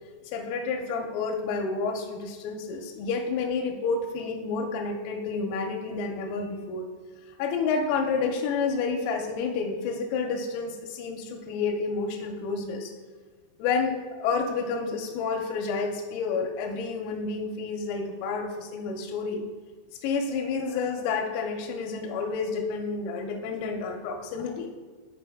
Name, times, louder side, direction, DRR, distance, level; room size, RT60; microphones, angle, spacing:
voice 1, 0.2-6.9 7.3-12.9 13.6-19.4 20.0-24.7, left 4 dB, 85° left, 3 dB, 3.3 m, -30 dB
9.1 x 4.1 x 3.4 m, 1.5 s
omnidirectional pair, 6.0 m